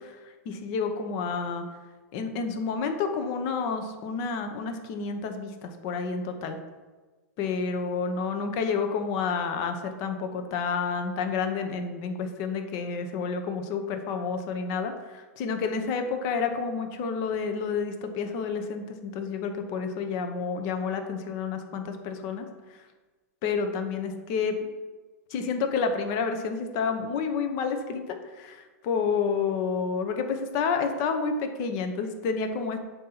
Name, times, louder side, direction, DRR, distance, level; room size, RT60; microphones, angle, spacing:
voice 1, 0.0-1.6 2.1-6.6 7.4-22.9 23.4-24.7 25.3-32.8, left 5 dB, 45° left, 6 dB, 0.9 m, -30 dB
7.2 x 2.9 x 5.8 m, 1.3 s
hypercardioid pair, 120°, 9 cm